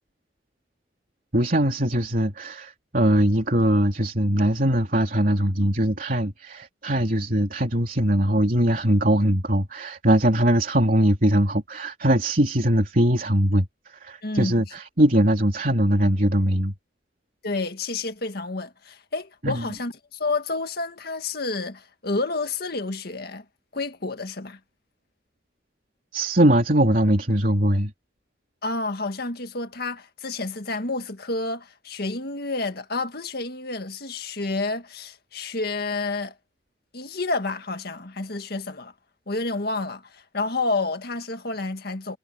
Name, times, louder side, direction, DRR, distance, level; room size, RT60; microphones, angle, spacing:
voice 1, 1.3-16.7 19.4-19.6 26.1-27.9, right 1 dB, 50° right, 3.3 m, -21 dB
voice 2, 14.2-14.5 17.4-23.4 23.7-24.6 28.6-36.3 36.9-38.9 39.3-42.2, left 3 dB, 60° left, 1.9 m, -29 dB
head